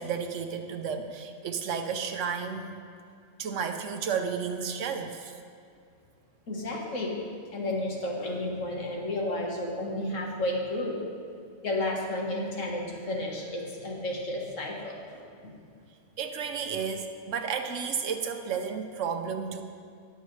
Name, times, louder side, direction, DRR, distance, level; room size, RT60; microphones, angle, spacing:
voice 1, 0.0-2.8 3.4-5.3 16.2-19.6, right 6 dB, 75° right, 6 dB, 1.1 m, -32 dB
voice 2, 6.5-7.2 7.5-11.0 11.6-15.5, left 1 dB, 80° left, -1 dB, 1.8 m, -32 dB
19.0 x 6.7 x 3.3 m, 2.3 s
omnidirectional pair, 1.3 m